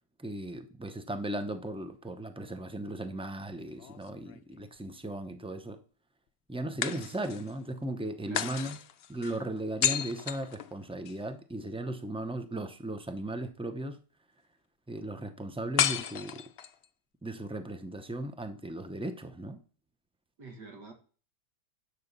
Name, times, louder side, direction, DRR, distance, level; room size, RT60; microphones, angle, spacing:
voice 1, 0.2-5.8 6.5-8.8 9.1-14.0 14.9-16.4 17.2-19.6, right 1 dB, 10° right, 0.3 m, -37 dB
sound 1, 3.7-4.8 6.8-7.6 8.3-11.2 15.8-16.9, left 9 dB, 80° left, 0.5 m, -33 dB
voice 2, 8.2-8.6 20.4-20.9, right 3 dB, 70° right, 2.3 m, -47 dB
11.0 x 5.2 x 6.8 m
omnidirectional pair, 1.9 m